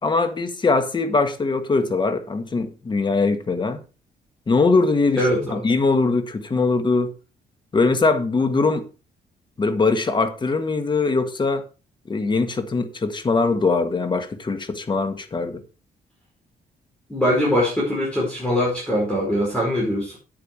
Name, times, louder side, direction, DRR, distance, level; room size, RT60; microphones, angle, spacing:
voice 1, 0.0-3.8 4.5-5.2 5.5-7.1 7.7-8.9 9.6-11.6 12.1-15.6, left 3 dB, 30° left, 1.6 m, -21 dB
voice 2, 5.2-5.6 17.1-20.2, equal, 5° left, 4.9 m, -22 dB
9.1 x 9.0 x 4.4 m
cardioid pair, 125°, 17 cm